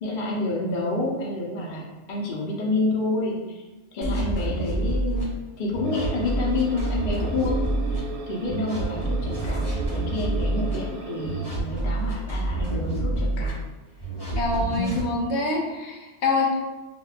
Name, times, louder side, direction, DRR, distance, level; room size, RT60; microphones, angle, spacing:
voice 1, 0.0-3.6 3.9-13.6, left 2 dB, 50° left, -3 dB, 0.8 m, -29 dB
sound 1, 4.0-5.2 5.7-8.0 8.5-10.7 11.2-13.5 14.0-15.0, right 2 dB, 20° left, 1.3 m, -27 dB
sound 2, 5.8-11.6, right 4 dB, 85° right, 0.9 m, -36 dB
voice 2, 14.4-16.6, left 3 dB, 75° left, -1 dB, 1.0 m, -26 dB
5.1 x 2.2 x 2.4 m, 1.2 s
omnidirectional pair, 1.2 m